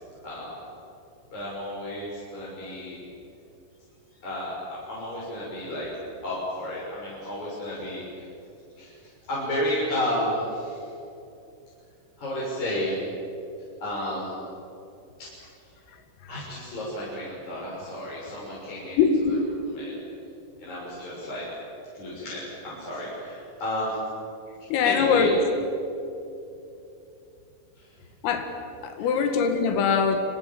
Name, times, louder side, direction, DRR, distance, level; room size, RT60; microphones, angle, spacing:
voice 1, 1.3-3.0 4.2-8.3 8.8-9.0 9.3-10.9 12.2-13.0 13.8-14.4 15.2-15.3 16.3-19.0 19.3-19.4 19.7-20.0 20.6-21.5 21.9-24.0 24.8-25.3 27.8-27.9 29.0-29.2, left 1 dB, 35° left, -8 dB, 8.0 m, -32 dB
voice 2, 19.0-19.4 24.7-25.4 28.2-28.5 28.8-30.2, left 6 dB, 85° left, 6 dB, 4.7 m, -22 dB
28.5 x 26.5 x 7.7 m, 2.8 s
omnidirectional pair, 5.8 m